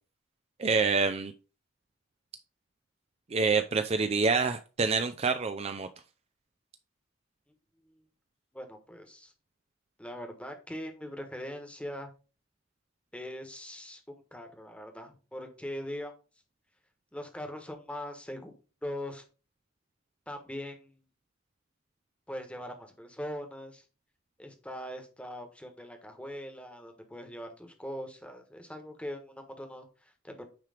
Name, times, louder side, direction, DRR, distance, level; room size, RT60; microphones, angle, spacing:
voice 1, 0.6-1.3 3.3-5.9, right 4 dB, 30° right, 8 dB, 0.4 m, -27 dB
voice 2, 8.5-9.3 10.0-12.1 13.1-16.1 17.1-18.5 18.8-19.2 20.3-21.0 22.3-23.8 24.4-30.4, equal, 5° left, 5 dB, 1.2 m, -41 dB
9.2 x 3.2 x 4.9 m, 0.34 s
head